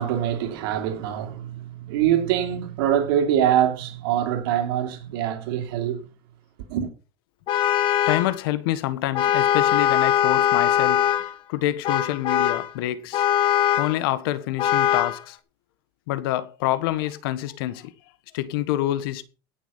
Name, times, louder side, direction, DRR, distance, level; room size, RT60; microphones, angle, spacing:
voice 1, 0.0-6.0 6.7-6.9, right 10 dB, 85° right, 3.2 m, -24 dB
Vehicle horn car horn honking, 7.5-8.4 9.1-11.3 11.8-12.7 13.1-14.0 14.6-15.2, left 11 dB, 45° left, 1.7 m, -21 dB
voice 2, 8.1-11.1 11.5-13.3 13.8-15.4 16.1-17.9 18.3-19.2, left 14 dB, 85° left, 1.4 m, -26 dB
17.0 x 7.0 x 5.7 m
supercardioid pair, 130°, 12 cm